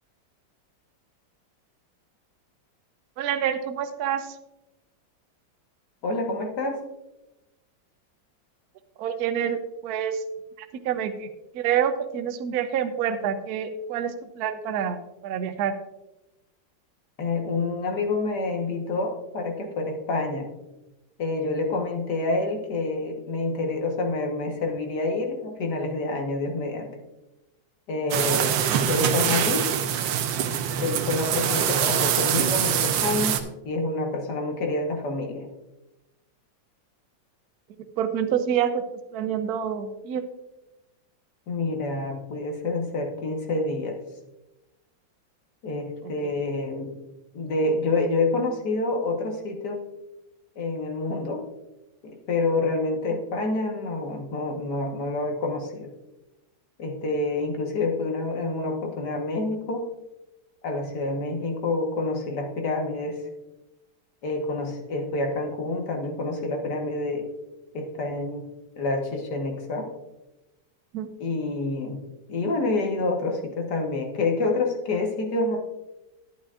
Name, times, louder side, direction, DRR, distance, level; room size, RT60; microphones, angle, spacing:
voice 1, 3.2-4.4 9.0-10.2 10.6-11.3 11.5-15.7 28.7-28.8 38.0-38.8 39.1-40.2 46.0-46.3 70.9-71.1, right 8 dB, 65° right, 9 dB, 1.1 m, -27 dB
voice 2, 6.0-6.8 17.2-20.5 21.2-26.9 27.9-29.7 30.8-35.5 41.5-44.0 45.6-46.9 47.3-49.8 50.6-51.4 52.0-55.9 56.8-59.9 60.6-63.2 64.2-67.3 67.7-68.5 68.8-69.9 71.2-72.0 72.3-75.6, left 2 dB, 65° left, 3 dB, 1.8 m, -27 dB
sound 1, 28.1-33.4, right 9 dB, 85° right, 1.5 m, -24 dB
11.5 x 11.0 x 2.5 m, 0.97 s
omnidirectional pair, 2.0 m